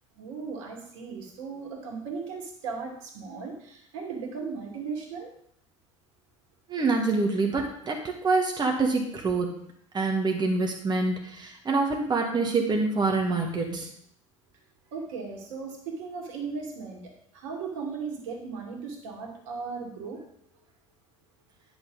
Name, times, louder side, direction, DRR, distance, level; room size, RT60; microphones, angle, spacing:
voice 1, 0.2-5.3 14.9-20.3, right 5 dB, 65° right, 1 dB, 2.3 m, -37 dB
voice 2, 6.7-9.6 9.9-13.9, right 3 dB, 25° right, 1 dB, 1.7 m, -26 dB
10.5 x 6.4 x 4.0 m, 0.68 s
figure-of-eight pair, 70°, 17 cm